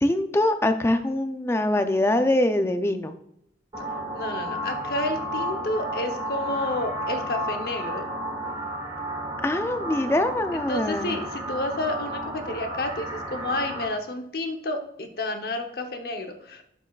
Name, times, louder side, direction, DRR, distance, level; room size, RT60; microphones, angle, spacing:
voice 1, 0.0-3.1 9.4-11.2, left 1 dB, 15° left, 8 dB, 0.4 m, -23 dB
sound 1, 3.7-13.8, equal, 25° right, 1.4 m, -32 dB
voice 2, 4.1-8.1 10.7-16.6, left 1 dB, 55° left, 5 dB, 0.9 m, -30 dB
9.2 x 6.8 x 2.4 m, 0.75 s
head